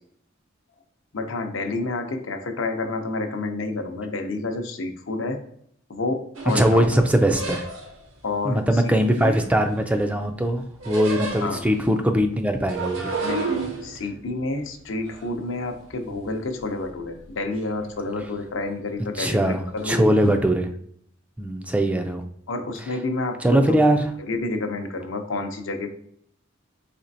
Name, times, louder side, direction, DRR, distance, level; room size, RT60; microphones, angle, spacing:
voice 1, 1.1-5.4 5.9-6.8 8.2-8.6 9.2-9.3 11.4-11.6 13.2-20.1 22.5-23.8 24.3-25.9, left 3 dB, 75° left, 5 dB, 0.6 m, -29 dB
sound 1, 6.4-8.1 8.8-10.1 10.4-11.9 12.5-16.3 16.6-17.3 17.6-18.1 18.5-18.7 19.8-20.2, right 3 dB, 80° right, 0.9 m, -32 dB
voice 2, 6.5-7.7 8.4-13.1 19.1-20.7 21.4-22.2 22.8-23.0 23.4-24.1, right 1 dB, 5° right, 5 dB, 0.3 m, -21 dB
4.3 x 3.2 x 2.6 m, 0.68 s
head